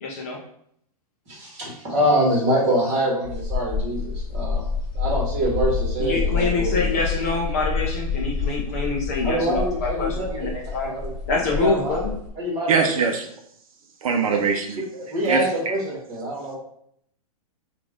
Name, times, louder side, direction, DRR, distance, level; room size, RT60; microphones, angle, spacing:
voice 1, 0.0-0.4 6.0-10.9 11.3-12.1, left 3 dB, 25° left, -2 dB, 0.5 m, -26 dB
voice 2, 1.3-4.6 4.9-6.9 9.2-10.5 10.8-11.1 11.5-11.9 12.4-12.9 14.8-16.6, right 1 dB, 25° right, -4 dB, 1.4 m, -25 dB
sound 1, 3.2-12.3, left 5 dB, ahead, 1.7 m, -28 dB
voice 3, 12.7-13.3 14.0-14.8 15.2-15.4, right 5 dB, 65° right, 4 dB, 0.6 m, -21 dB
5.0 x 2.5 x 3.6 m, 0.70 s
hypercardioid pair, 180°, 19 cm